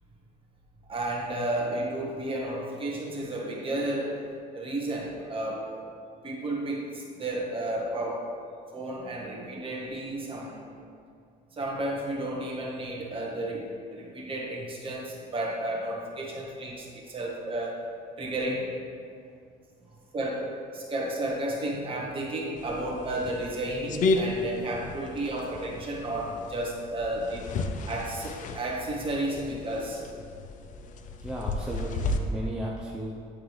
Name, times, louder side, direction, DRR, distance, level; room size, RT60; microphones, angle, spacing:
voice 1, 0.9-4.2 4.5-5.9 6.2-8.3 8.7-10.6 11.5-17.8 18.2-18.7 20.1-27.4 27.8-30.0, right 1 dB, 30° right, -2 dB, 1.3 m, -32 dB
sound 1, 22.6-32.2, left 3 dB, 50° left, 0.5 m, -33 dB
voice 2, 31.2-33.1, equal, 5° right, -4 dB, 0.5 m, -35 dB
9.5 x 3.8 x 3.1 m, 2.3 s
cardioid pair, 110°, 17 cm